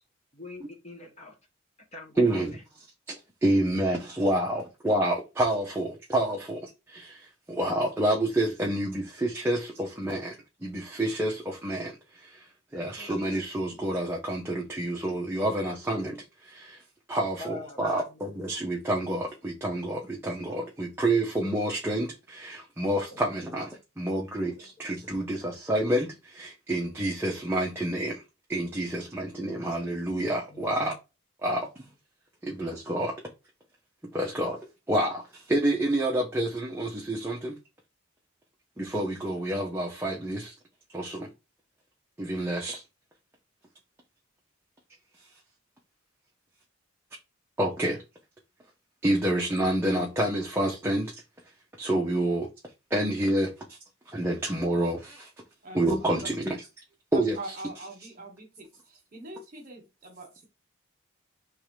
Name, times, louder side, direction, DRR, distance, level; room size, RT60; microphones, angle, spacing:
voice 1, 0.3-1.3 1.9-2.5 12.8-13.1 17.4-17.8 23.1-23.2 24.6-24.7 30.5-30.6, left 1 dB, 30° left, 0.9 m, -44 dB
voice 2, 2.2-2.6 3.1-3.2 3.4-12.5 12.7-16.7 17.1-28.2 28.5-30.9 31.4-31.7 32.4-33.2 34.1-34.6 34.9-37.6 38.8-40.5 40.9-41.3 42.2-42.8 47.6-48.0 49.0-51.1 51.8-52.5 52.9-53.8 54.1-55.3 55.7-56.6 57.1-57.4, right 1 dB, 10° right, 0.6 m, -28 dB
voice 3, 57.1-60.4, right 2 dB, 40° right, 1.4 m, -43 dB
3.5 x 3.1 x 4.9 m
head